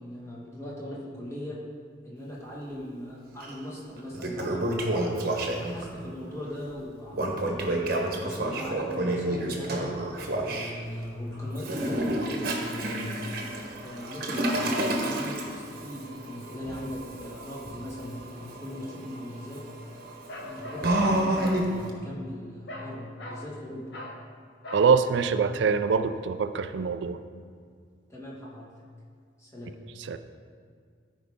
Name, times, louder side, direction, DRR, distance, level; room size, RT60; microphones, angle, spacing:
voice 1, 0.0-1.6 2.0-5.0 5.4-7.8 8.2-9.9 10.4-13.1 13.8-19.6 20.4-23.9 28.1-28.7 29.4-29.7, left 1 dB, 15° left, -5 dB, 1.7 m, -39 dB
Toilet flush, 3.4-3.5 4.0-5.9 7.1-10.7 11.6-21.9, right 1 dB, 50° right, 1.1 m, -30 dB
Bark, 20.3-21.7 22.7-22.9 23.2-23.5 23.9-24.2 24.6-24.9, left 1 dB, 60° left, 1.0 m, -40 dB
voice 2, 24.7-27.2 30.1-30.2, right 5 dB, 65° right, 11 dB, 0.4 m, -24 dB
14.0 x 4.9 x 3.6 m, 2.1 s
head